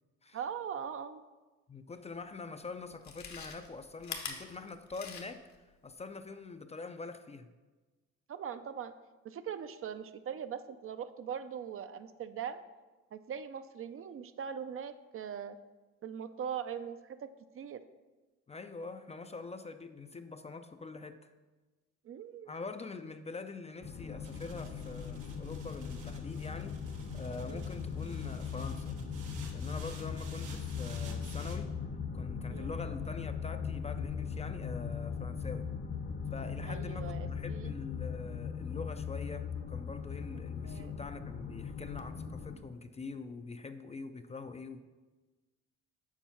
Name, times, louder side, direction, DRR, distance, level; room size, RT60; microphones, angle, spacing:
voice 1, 0.3-1.2 8.3-8.9 9.2-12.6 13.1-15.6 16.0-17.3 17.5-17.8 22.0-22.5 27.5-27.7 32.5-32.7 36.7-37.8 40.6-41.0, right 8 dB, 45° right, 11 dB, 0.5 m, -41 dB
voice 2, 1.7-7.5 18.5-21.3 22.5-26.8 27.1-29.0 29.5-31.7 32.1-35.7 36.3-44.8, left 4 dB, 20° left, 9 dB, 0.4 m, -44 dB
Chewing mastication, 2.1-2.2 2.9-5.6 5.9-6.0, left 6 dB, 65° left, 1.0 m, -44 dB
sound 1, 23.8-42.6, left 6 dB, 40° left, 0.8 m, -39 dB
sound 2, 24.2-31.6, right 5 dB, 90° right, 1.1 m, -54 dB
7.2 x 4.5 x 5.7 m, 1.2 s
cardioid pair, 90°, 30 cm